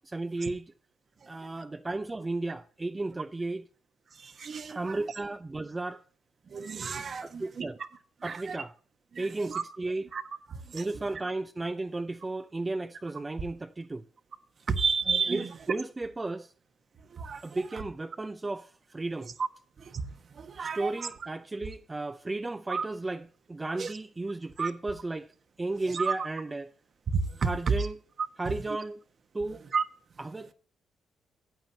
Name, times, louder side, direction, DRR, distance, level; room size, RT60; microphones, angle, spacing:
voice 1, 0.1-0.7 1.3-3.7 4.7-6.0 7.2-7.8 8.2-8.7 9.2-10.0 10.7-14.1 15.3-16.5 17.4-19.3 20.6-25.3 25.6-26.7 27.4-28.0 28.4-29.0 29.3-29.7 30.2-30.5, right 2 dB, 20° right, 0.6 m, -34 dB
voice 2, 4.1-5.0 6.5-7.9 8.2-8.6 9.1-9.6 10.1-10.2 10.5-10.9 14.7-15.6 17.1-17.8 19.4-19.5 19.8-21.1 22.7-22.9 23.8-23.9 24.6-24.7 25.9-26.2 27.1-27.9 28.5-28.6 29.7-29.8, right 5 dB, 50° right, 1.2 m, -31 dB
13.5 x 8.9 x 2.8 m
supercardioid pair, 70°, 0 cm